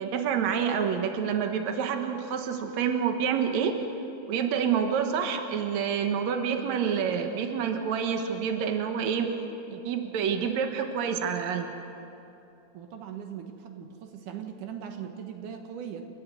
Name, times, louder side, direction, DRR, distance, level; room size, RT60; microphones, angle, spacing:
voice 1, 0.0-3.8 4.3-9.3 9.7-11.7, right 7 dB, 65° right, 5 dB, 2.5 m, -28 dB
voice 2, 12.7-16.1, right 8 dB, 85° right, 5 dB, 2.8 m, -39 dB
30.0 x 13.5 x 7.8 m, 2.7 s
omnidirectional pair, 3.6 m